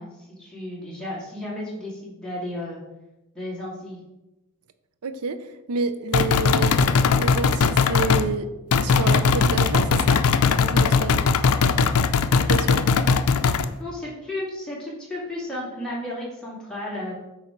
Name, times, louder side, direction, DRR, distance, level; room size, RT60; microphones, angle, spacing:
voice 1, 0.0-2.8 3.3-4.0 13.8-17.1, left 1 dB, 5° left, -6 dB, 2.3 m, -33 dB
voice 2, 5.0-5.4 5.7-6.8 7.2-7.6 7.9-8.5 8.8-10.2 10.6-11.2 12.3-12.8, right 4 dB, 85° right, 11 dB, 0.5 m, -28 dB
sound 1, 6.1-8.3 8.7-13.7, left 5 dB, 85° left, 0.5 m, -19 dB
8.5 x 3.3 x 5.8 m, 0.98 s
head